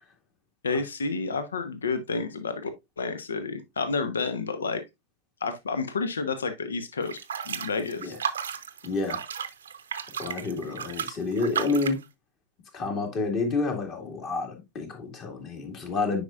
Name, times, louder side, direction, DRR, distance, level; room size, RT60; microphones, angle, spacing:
voice 1, 0.6-2.7 3.0-4.8 5.4-7.2 7.5-8.1, left 4 dB, 70° left, 0.7 m, -30 dB
sound 1, 7.0-12.0, right 7 dB, 65° right, 0.7 m, -34 dB
voice 2, 8.8-9.2 10.2-12.0 12.7-16.2, left 3 dB, 35° left, 2.1 m, -29 dB
9.3 x 5.1 x 2.4 m
figure-of-eight pair, 90°, 0 cm